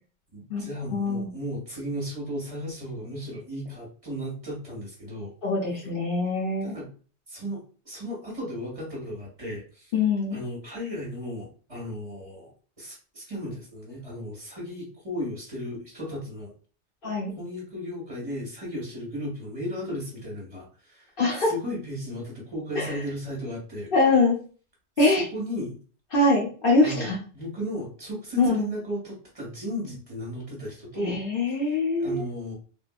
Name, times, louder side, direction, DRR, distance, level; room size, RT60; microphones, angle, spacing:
voice 1, 0.3-5.3 6.6-6.9 7.3-9.9 10.3-16.5 17.4-23.9 25.1-25.8 26.8-31.2 31.6-32.5, equal, 30° right, -3 dB, 1.4 m, -35 dB
voice 2, 0.9-1.3 5.4-6.8 9.9-10.4 17.0-17.3 21.2-21.5 22.7-23.0 23.9-24.4 25.0-25.2 26.1-27.2 28.4-28.6 31.0-32.2, left 3 dB, 55° left, -2 dB, 0.9 m, -23 dB
3.5 x 2.5 x 2.3 m, 0.39 s
omnidirectional pair, 1.2 m